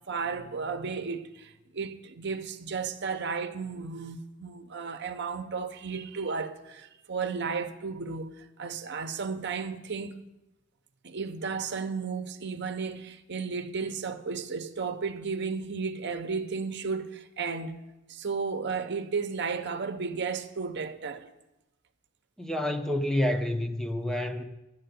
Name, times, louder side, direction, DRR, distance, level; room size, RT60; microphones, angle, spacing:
voice 1, 0.1-10.2 11.0-17.8 18.1-21.2, right 5 dB, 55° right, 0.8 m, -34 dB
voice 2, 22.4-24.4, left 1 dB, ahead, 0.6 m, -28 dB
11.0 x 7.6 x 9.4 m
head